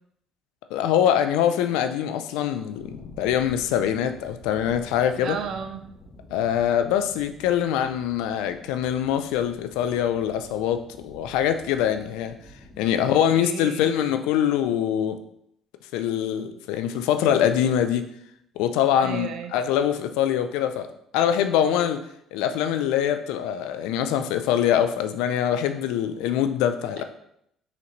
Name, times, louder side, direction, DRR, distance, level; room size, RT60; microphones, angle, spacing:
voice 1, 0.7-5.4 6.3-12.3 12.8-15.2 15.9-18.1 18.6-20.9 21.1-22.0 22.3-27.0, left 10 dB, 85° left, 9 dB, 0.3 m, -24 dB
sound 1, 2.8-13.0, left 1 dB, 25° left, 1.1 m, -48 dB
voice 2, 5.1-5.8 13.0-13.9 19.0-19.5, right 7 dB, 65° right, 8 dB, 0.5 m, -34 dB
4.0 x 3.2 x 3.0 m, 0.75 s
supercardioid pair, 80°, 0 cm